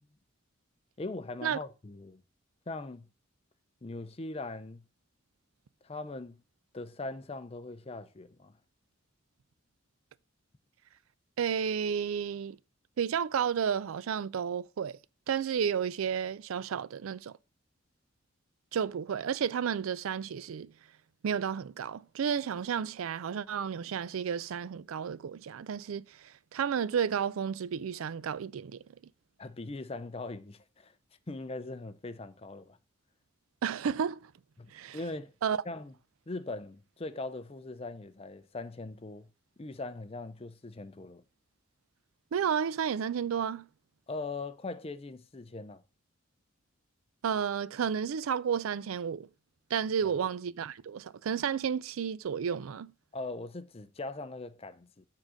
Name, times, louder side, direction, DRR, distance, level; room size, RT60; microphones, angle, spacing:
voice 1, 1.0-2.2 2.7-3.1 3.8-4.8 5.8-6.4 6.7-8.5 29.4-30.9 31.3-32.8 34.6-35.3 35.7-35.9 36.3-39.3 39.6-41.2 44.1-45.8 50.0-50.1 53.1-55.1, left 2 dB, 30° left, 0.5 m, -40 dB
voice 2, 11.4-12.6 13.0-15.0 15.3-17.4 18.7-20.7 21.2-28.8 33.6-34.3 34.7-35.0 35.4-35.6 42.3-43.7 47.2-49.3 49.7-52.9, right 7 dB, 85° right, 0.4 m, -32 dB
7.3 x 3.9 x 6.3 m
head